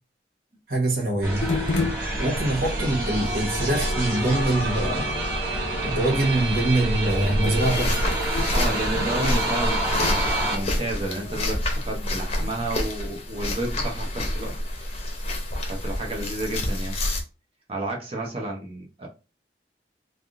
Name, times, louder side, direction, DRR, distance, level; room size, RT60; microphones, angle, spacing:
voice 1, 0.7-1.4 2.2-5.1 5.8-8.0, right 2 dB, 55° right, 1.1 m, -24 dB
sound 1, 1.2-10.6, right 1 dB, 15° right, 1.6 m, -27 dB
sound 2, 1.4-12.7, left 3 dB, 85° left, 0.7 m, -36 dB
sound 3, 7.6-17.2, left 1 dB, 35° left, 0.7 m, -28 dB
voice 2, 8.5-15.0 15.7-17.0 17.7-19.1, right 1 dB, 35° right, 0.7 m, -31 dB
3.4 x 2.5 x 2.4 m
head